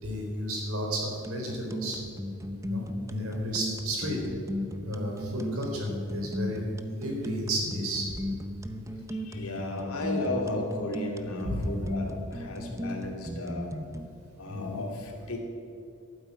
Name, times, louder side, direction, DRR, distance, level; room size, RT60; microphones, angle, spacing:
voice 1, 0.0-2.0 2.7-4.2 4.8-6.6 7.0-8.2 11.4-11.7 14.5-14.8, equal, 80° right, 0 dB, 4.0 m, -32 dB
sound 1, 1.2-14.1, equal, 15° right, 0.7 m, -35 dB
voice 2, 9.1-13.7 14.4-15.4, left 2 dB, 80° left, 1 dB, 2.7 m, -34 dB
12.0 x 9.4 x 8.4 m, 2.6 s
head